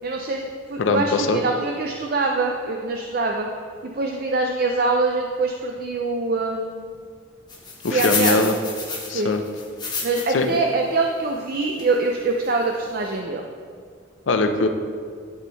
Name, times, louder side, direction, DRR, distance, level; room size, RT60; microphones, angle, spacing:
voice 1, 0.0-0.4 0.7-3.5 3.8-6.9 7.9-8.5 9.0-9.4 10.0-13.5, right 3 dB, 50° right, 2 dB, 0.4 m, -24 dB
voice 2, 0.8-1.4 7.8-8.5 9.1-9.4 10.3-10.5 14.3-14.7, left 3 dB, 75° left, 6 dB, 0.6 m, -21 dB
sound 1, 7.5-10.5 10.9-11.0 11.8-12.0 12.4-12.5 12.7-12.9, left 4 dB, 20° left, 1.1 m, -29 dB
11.0 x 3.7 x 3.9 m, 2.1 s
head